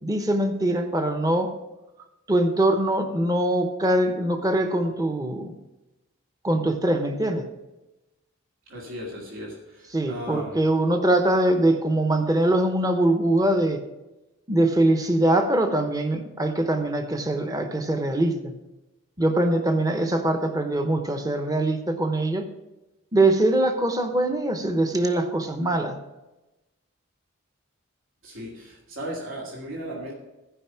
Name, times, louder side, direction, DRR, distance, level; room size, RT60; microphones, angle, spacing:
voice 1, 0.0-1.5 2.3-5.6 6.4-7.5 9.9-13.8 14.5-18.5 19.2-22.5 23.1-26.0, right 1 dB, 15° right, 6 dB, 0.8 m, -23 dB
voice 2, 8.7-10.6 28.2-30.1, equal, 75° right, -3 dB, 2.4 m, -36 dB
15.0 x 5.3 x 5.7 m, 1.0 s
head